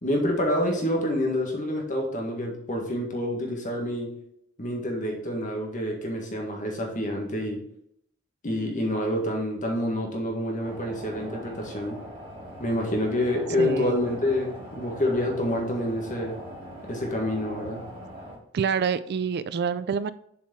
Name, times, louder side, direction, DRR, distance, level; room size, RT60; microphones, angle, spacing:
voice 1, 0.0-4.2 4.6-7.6 8.4-12.0 12.6-16.4 16.8-17.8, left 1 dB, 40° left, 1.7 m, -27 dB
sound 1, 10.6-18.4, equal, 30° right, 2.5 m, -41 dB
voice 2, 13.6-14.0 18.5-20.1, right 6 dB, 55° right, 0.4 m, -27 dB
7.3 x 4.6 x 4.4 m
head